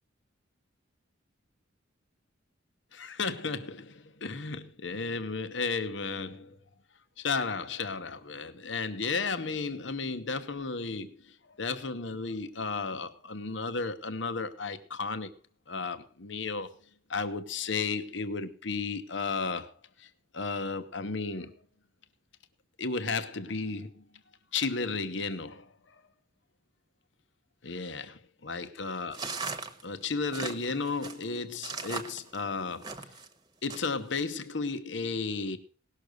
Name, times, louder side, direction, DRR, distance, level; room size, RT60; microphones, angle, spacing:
voice 1, 2.9-6.6 7.2-15.3 15.7-16.7 17.1-21.5 22.8-24.0 24.5-25.7 27.6-28.2 28.5-29.5 29.8-32.9 33.6-35.6, left 4 dB, 65° left, 1.1 m, -34 dB
sound 1, 29.1-33.3 33.7-34.2, right 4 dB, 20° right, 1.2 m, -38 dB
18.0 x 6.7 x 6.4 m
head